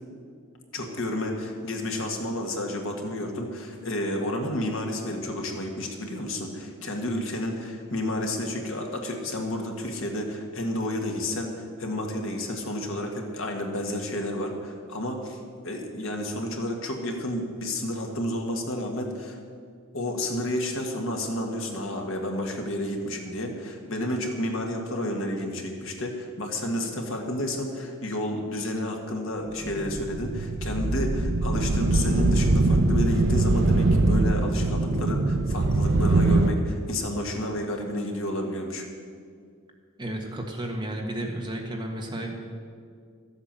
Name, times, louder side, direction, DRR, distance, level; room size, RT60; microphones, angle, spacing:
voice 1, 0.7-15.4 15.6-19.4 19.9-38.9, left 1 dB, 65° left, 2 dB, 1.7 m, -31 dB
sound 1, 29.6-36.5, right 2 dB, 55° right, 0.6 m, -22 dB
voice 2, 40.0-42.3, right 1 dB, 20° right, 1 dB, 1.4 m, -33 dB
13.5 x 8.2 x 7.5 m, 2.1 s
head